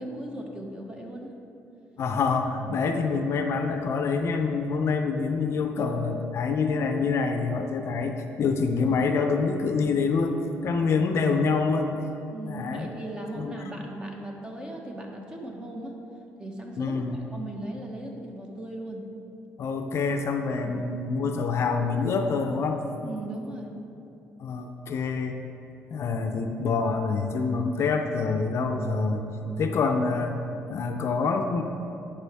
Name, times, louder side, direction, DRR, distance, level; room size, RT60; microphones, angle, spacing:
voice 1, 0.0-1.3 12.3-16.0 16.4-17.0 17.3-19.0 20.6-20.7 23.0-23.7, right 1 dB, 15° right, 0 dB, 1.2 m, -37 dB
voice 2, 2.0-10.4 10.6-11.9 12.5-12.9 13.4-13.6 16.8-17.2 19.6-22.8 24.4-25.4 25.9-29.3 29.6-30.4 30.7-31.6, left 4 dB, 60° left, 5 dB, 0.5 m, -26 dB
11.0 x 5.0 x 3.5 m, 2.8 s
cardioid pair, 95°, 5 cm